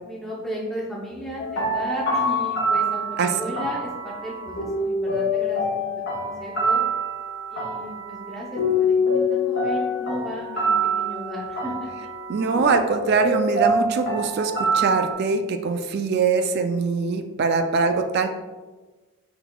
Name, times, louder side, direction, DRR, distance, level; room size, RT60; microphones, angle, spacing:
voice 1, 0.0-5.9 6.2-6.8 7.5-8.6 9.0-12.1, left 1 dB, ahead, -5 dB, 0.6 m, -34 dB
sound 1, 1.4-15.1, equal, 50° left, 0.9 m, -25 dB
voice 2, 12.3-18.3, right 4 dB, 45° right, 7 dB, 0.3 m, -22 dB
5.6 x 3.9 x 2.3 m, 1.2 s
head